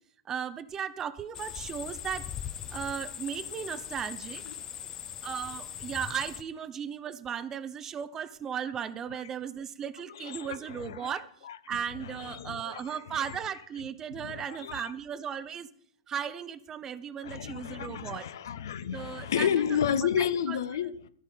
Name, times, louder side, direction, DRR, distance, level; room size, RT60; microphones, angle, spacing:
voice 1, 0.3-2.3 2.7-4.4 5.2-11.3 11.7-15.7 16.1-18.3 18.9-19.5 20.5-20.6, right 8 dB, 20° right, 0.7 m, -36 dB
sound 1, 1.3-6.4, left 9 dB, 20° left, 0.6 m, -40 dB
voice 2, 10.1-11.1 11.4-13.4 14.1-14.9 17.2-21.1, left 8 dB, 55° left, 0.8 m, -32 dB
14.5 x 5.5 x 9.0 m
figure-of-eight pair, 105°, 2 cm